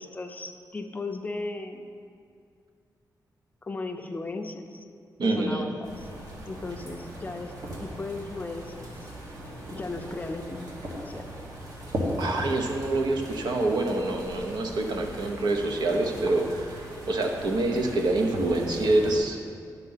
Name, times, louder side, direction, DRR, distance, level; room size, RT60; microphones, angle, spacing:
voice 1, 0.0-1.9 3.6-4.9 5.2-6.1 6.5-7.5 7.8-9.0 9.7-11.3, left 3 dB, 25° left, 5 dB, 0.5 m, -36 dB
voice 2, 5.2-5.6 12.2-19.4, right 2 dB, 80° right, 3 dB, 0.9 m, -26 dB
sound 1, 5.8-19.2, equal, 55° right, 1.5 m, -38 dB
11.0 x 4.1 x 5.6 m, 2.3 s
wide cardioid pair, 165°, 7 cm